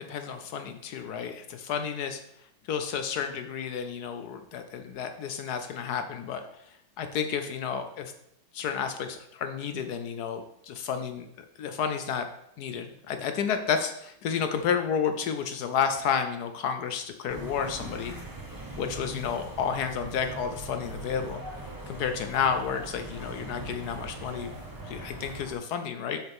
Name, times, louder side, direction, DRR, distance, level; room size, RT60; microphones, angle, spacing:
voice 1, 0.0-2.2 2.7-6.4 7.0-8.1 8.5-11.3 11.6-12.3 12.6-18.1 18.8-21.4 21.9-24.5 24.8-26.2, left 7 dB, 70° left, 7 dB, 0.9 m, -31 dB
sound 1, 17.3-25.5, right 2 dB, 20° right, 0.6 m, -41 dB
7.2 x 6.3 x 3.5 m, 0.75 s
omnidirectional pair, 2.2 m